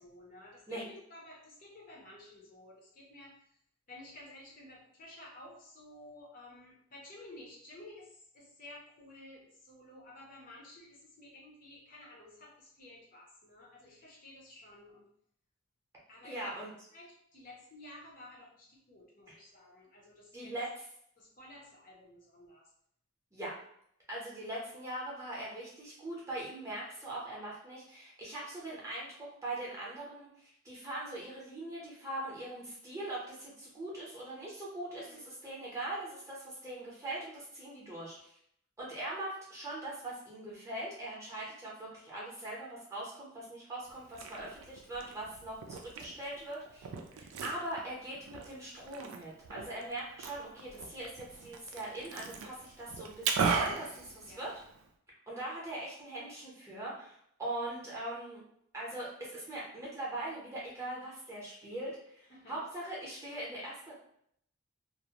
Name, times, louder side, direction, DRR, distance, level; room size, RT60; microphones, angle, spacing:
voice 1, 0.0-3.6 3.9-15.1 16.1-16.6 16.9-20.5 21.2-22.7 35.0-35.3 44.2-44.4 54.3-54.5 62.3-62.7, left 1 dB, 40° left, -3 dB, 0.6 m, -53 dB
voice 2, 16.2-16.7 19.3-19.4 20.3-20.7 23.3-23.6 24.1-29.1 29.4-38.3 38.8-46.9 47.2-54.5 55.3-58.4 58.7-63.9, right 1 dB, 15° right, -5 dB, 0.6 m, -41 dB
Liquid, 43.9-54.9, right 5 dB, 85° right, 0.3 m, -38 dB
2.4 x 2.1 x 2.8 m, 0.70 s
head